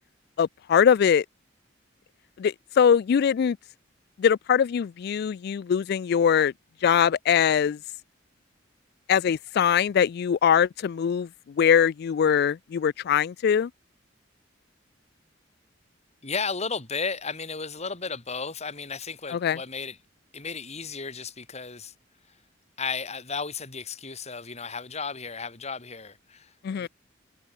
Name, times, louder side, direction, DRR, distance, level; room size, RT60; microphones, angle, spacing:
voice 1, 0.4-1.2 2.4-3.6 4.2-6.5 6.8-7.8 9.1-11.3 11.6-13.7 19.3-19.6 26.6-26.9, left 8 dB, 55° left, 0.3 m, -22 dB
voice 2, 16.2-20.0 20.3-21.9 22.8-26.9, left 5 dB, 35° left, 2.8 m, -34 dB
head